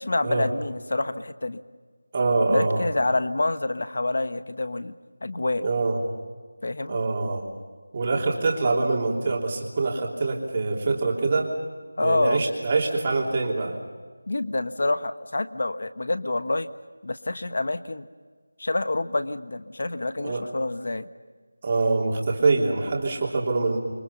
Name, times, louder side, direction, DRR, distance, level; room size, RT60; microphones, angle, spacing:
voice 1, 0.0-1.6 2.5-4.9 5.2-5.6 6.6-7.0 12.0-12.4 14.3-16.7 17.0-18.1 18.6-21.1, left 2 dB, 55° left, 11 dB, 1.3 m, -27 dB
voice 2, 2.1-2.8 5.6-6.0 6.9-7.4 7.9-11.5 12.0-13.8 20.2-20.4 21.6-23.8, right 3 dB, 25° right, -1 dB, 3.2 m, -24 dB
29.0 x 24.0 x 5.6 m, 1.5 s
figure-of-eight pair, 175°, 0 cm